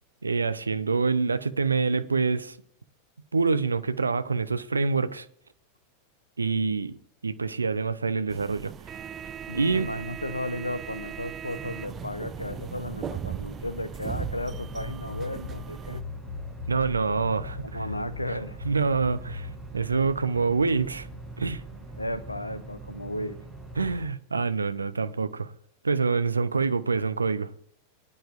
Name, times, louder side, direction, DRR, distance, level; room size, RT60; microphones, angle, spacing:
voice 1, 0.2-2.6 3.3-5.3 6.4-7.0 7.2-8.7 9.5-9.9 16.7-17.8 18.6-21.1 21.4-21.6 23.8-25.5 25.8-27.5, right 4 dB, 75° right, 0.6 m, -26 dB
sound 1, 8.3-16.0, right 8 dB, 25° right, 0.4 m, -38 dB
voice 2, 9.5-16.0 17.6-18.6 22.0-23.4, left 1 dB, 85° left, 0.8 m, -34 dB
sound 2, 11.5-24.1, right 2 dB, ahead, 6.2 m, -42 dB
sound 3, 14.1-19.6, left 6 dB, 70° left, 0.4 m, -39 dB
19.5 x 10.5 x 2.5 m
figure-of-eight pair, 90°, 0 cm